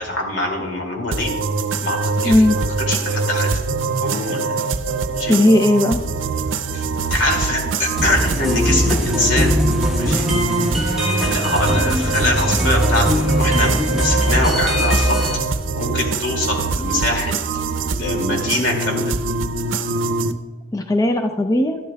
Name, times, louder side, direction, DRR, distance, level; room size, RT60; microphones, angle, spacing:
voice 1, 0.0-1.3 1.8-2.5 2.9-3.6 4.0-4.5 5.1-5.4 6.7-6.8 7.1-9.6 10.0-10.3 11.2-15.2 15.8-17.3 18.0-19.1, left 1 dB, 80° left, 1 dB, 2.4 m, -23 dB
sound 1, 1.1-20.3, right 3 dB, 85° right, 0.6 m, -23 dB
voice 2, 2.2-2.6 5.3-6.0 20.7-21.8, left 1 dB, 20° left, 5 dB, 0.4 m, -16 dB
sound 2, 8.0-15.4, equal, ahead, 1.0 m, -21 dB
13.0 x 12.0 x 2.3 m, 1.3 s
head